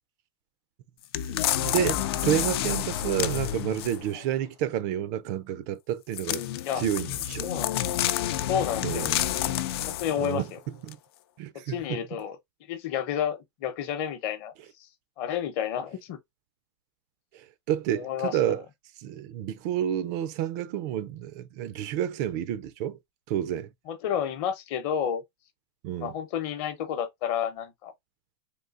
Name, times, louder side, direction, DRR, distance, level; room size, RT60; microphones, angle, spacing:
sound 1, 1.1-4.1 6.1-10.3 10.9-11.0, left 12 dB, 70° left, 0.4 m, -29 dB
voice 1, 1.3-6.4 6.8-7.5 8.8-9.3 10.2-10.5 10.8-11.0 11.4-12.0 17.3-18.6 19.0-23.0 23.3-23.7 25.8-26.1, right 11 dB, 40° right, 0.4 m, -30 dB
voice 2, 7.4-7.7 8.5-9.1 9.4-9.5 9.9-10.6 11.7-12.4 12.7-14.5 15.2-16.2 18.0-18.6 23.9-25.2 25.9-27.9, left 9 dB, 40° left, 0.8 m, -30 dB
3.7 x 2.7 x 2.4 m
supercardioid pair, 160°, 14 cm